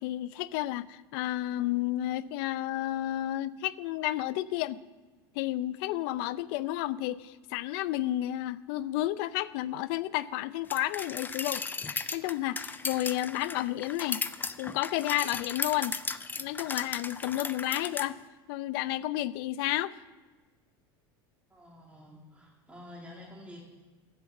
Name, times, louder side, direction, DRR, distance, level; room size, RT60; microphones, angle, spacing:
voice 1, 0.0-4.8 5.4-11.6 11.9-14.2 14.6-16.0 16.4-18.2 18.5-19.9, left 14 dB, 65° left, 18 dB, 0.5 m, -31 dB
sound 1, 10.7-18.1, left 4 dB, 15° left, 0.5 m, -36 dB
voice 2, 21.5-23.6, left 1 dB, 10° right, -3 dB, 2.0 m, -49 dB
10.5 x 7.6 x 8.3 m, 1.3 s
supercardioid pair, 115°, 13 cm